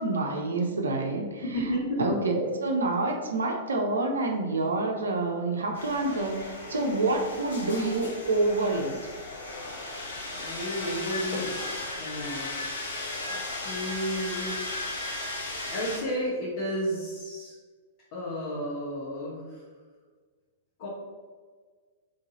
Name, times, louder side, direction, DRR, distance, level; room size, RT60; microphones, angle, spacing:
voice 1, 0.0-1.4 2.0-8.9, right 2 dB, 70° right, 2 dB, 0.7 m, -27 dB
voice 2, 1.4-2.2 10.4-12.5 13.6-14.5 15.7-17.5 18.1-19.6 20.8-20.9, equal, 45° left, -8 dB, 1.2 m, -32 dB
sound 1, 5.7-16.0, left 2 dB, 65° left, 1.2 m, -36 dB
3.8 x 3.4 x 4.1 m, 1.5 s
figure-of-eight pair, 100°, 0 cm